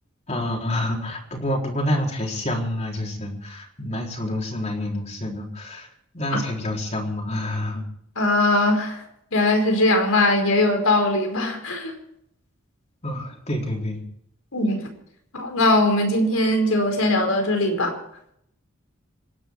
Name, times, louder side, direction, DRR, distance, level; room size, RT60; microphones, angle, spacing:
voice 1, 0.3-5.9 6.1-7.8 13.0-14.0, left 1 dB, 30° left, 0 dB, 4.0 m, -28 dB
voice 2, 8.2-9.0 9.3-11.9 14.5-14.8 15.3-17.9, left 1 dB, 85° left, 4 dB, 4.9 m, -20 dB
26.5 x 11.5 x 4.6 m, 0.72 s
head